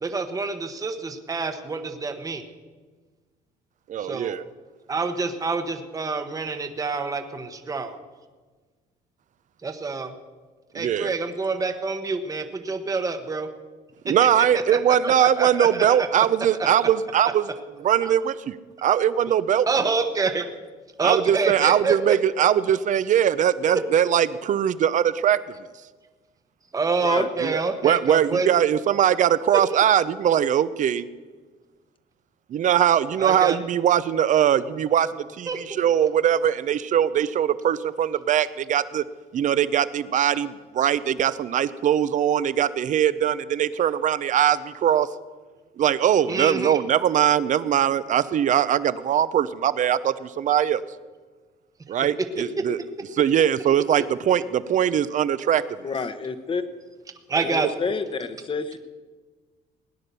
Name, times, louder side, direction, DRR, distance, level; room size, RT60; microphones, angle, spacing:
voice 1, 0.0-2.4 4.0-4.4 4.9-8.0 9.6-10.1 10.7-13.5 14.1-16.1 16.6-16.7 18.0-18.1 19.7-20.4 21.0-22.2 26.7-28.6 33.2-33.6 35.5-35.6 46.3-46.8 57.3-57.7, right 4 dB, 20° right, 7 dB, 1.1 m, -27 dB
voice 2, 3.9-4.4 10.7-11.1 14.0-17.5 17.8-18.6 18.8-19.7 21.0-25.4 27.4-31.1 32.5-39.0 39.3-45.1 45.8-50.8 51.9-52.8 53.1-55.6, right 10 dB, 50° right, 16 dB, 0.7 m, -21 dB
voice 3, 55.8-56.6 57.4-58.8, left 5 dB, 30° left, 11 dB, 1.1 m, -29 dB
17.5 x 9.8 x 6.8 m, 1.4 s
cardioid pair, 110°, 17 cm